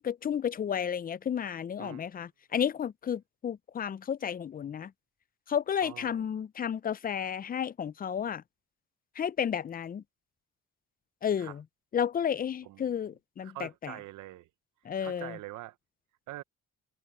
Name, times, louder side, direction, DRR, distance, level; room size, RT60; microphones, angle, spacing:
voice 1, 0.0-4.9 5.5-8.4 9.2-10.0 11.2-11.6 11.9-13.9 14.8-15.4, left 8 dB, 30° left, 0.4 m, -32 dB
voice 2, 5.8-6.2 11.4-11.6 12.6-12.9 13.4-14.5 15.0-15.8 16.3-16.4, right 16 dB, 80° right, 0.7 m, -44 dB
cardioid pair, 90°, 30 cm